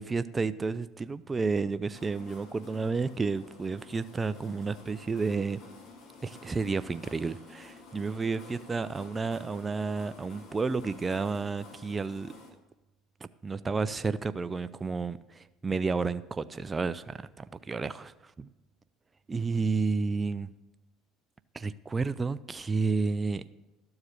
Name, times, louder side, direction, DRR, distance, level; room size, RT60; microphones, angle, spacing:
voice 1, 0.0-5.6 6.2-12.3 13.4-18.5 19.3-20.5 21.5-23.5, right 4 dB, 25° right, 14 dB, 0.3 m, -31 dB
sound 1, 1.9-12.5, left 3 dB, 50° left, 1.9 m, -51 dB
12.5 x 4.8 x 6.5 m, 1.0 s
supercardioid pair, 85°, 0 cm